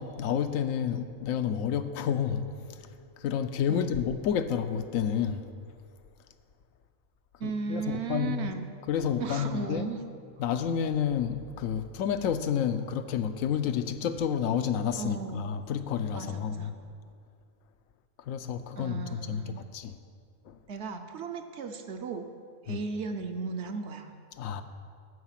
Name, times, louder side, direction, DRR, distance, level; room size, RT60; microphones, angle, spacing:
voice 1, 0.0-2.4 3.2-5.4 7.4-8.5 8.9-9.8 10.4-16.7 18.3-19.9 20.5-20.6 22.7-22.8 24.4-24.6, left 8 dB, 85° left, 9 dB, 1.0 m, -30 dB
voice 2, 7.4-8.7 9.2-10.0 15.0-15.5 16.1-16.7 18.7-19.6 20.7-22.3 22.6-24.1, right 4 dB, 60° right, 6 dB, 0.8 m, -35 dB
14.0 x 4.8 x 5.8 m, 2.2 s
omnidirectional pair, 1.4 m